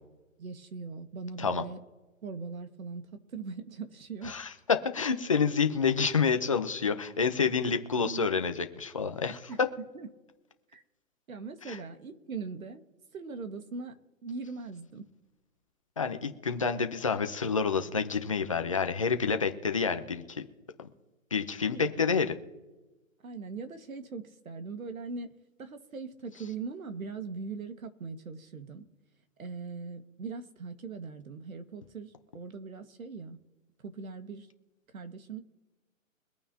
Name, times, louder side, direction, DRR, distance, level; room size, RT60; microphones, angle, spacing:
voice 1, 0.4-1.8 2.2-3.0 3.3-4.4 8.0-8.3 9.5-9.6 9.9-10.1 10.7-10.8 11.3-12.8 13.1-13.9 14.2-15.1 21.6-22.0 23.2-25.3 25.6-28.8 29.4-33.4 33.8-34.5 34.9-35.4, right 4 dB, 85° right, 8 dB, 1.8 m, -40 dB
voice 2, 4.2-9.4 11.7-11.8 16.0-20.4 20.8-20.9 21.3-22.3, left 5 dB, 25° left, 7 dB, 0.7 m, -28 dB
23.5 x 9.1 x 2.8 m, 1.1 s
hypercardioid pair, 175°, 41 cm